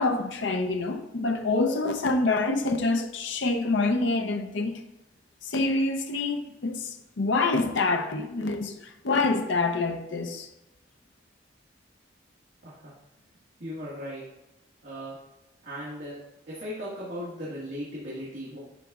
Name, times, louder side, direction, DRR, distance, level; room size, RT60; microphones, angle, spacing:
voice 1, 0.0-4.8 5.4-10.5, left 3 dB, 80° left, 0.7 m, -26 dB
voice 2, 13.6-14.2 14.8-15.2 15.6-16.2 16.5-18.6, equal, 60° right, 1.8 m, -37 dB
10.5 x 4.0 x 2.4 m
head